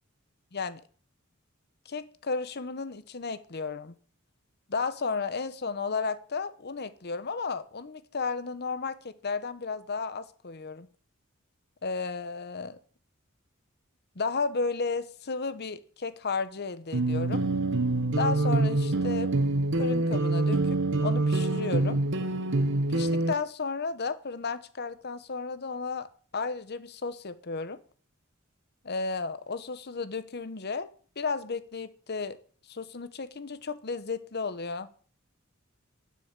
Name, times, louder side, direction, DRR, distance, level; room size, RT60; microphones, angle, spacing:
voice 1, 1.9-3.9 4.7-10.9 11.8-12.8 14.2-17.4 18.2-19.3 19.8-22.0 22.9-26.1 26.3-27.8 28.8-30.9 31.2-32.4 32.7-34.9, left 4 dB, 50° left, 14 dB, 1.0 m, -33 dB
sound 1, 16.9-23.3, right 2 dB, 60° right, 1.1 m, -26 dB
11.5 x 5.9 x 8.8 m, 0.43 s
head